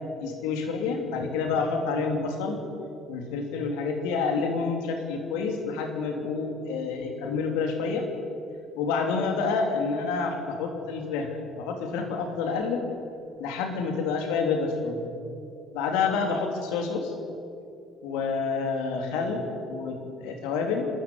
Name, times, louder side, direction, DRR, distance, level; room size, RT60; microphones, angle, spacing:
voice 1, 0.2-2.6 3.1-8.1 8.7-12.8 13.4-15.0 15.7-17.1 18.0-20.9, left 4 dB, 70° left, 4 dB, 3.3 m, -28 dB
29.5 x 14.0 x 9.6 m, 2.6 s
hypercardioid pair, 55°, 0 cm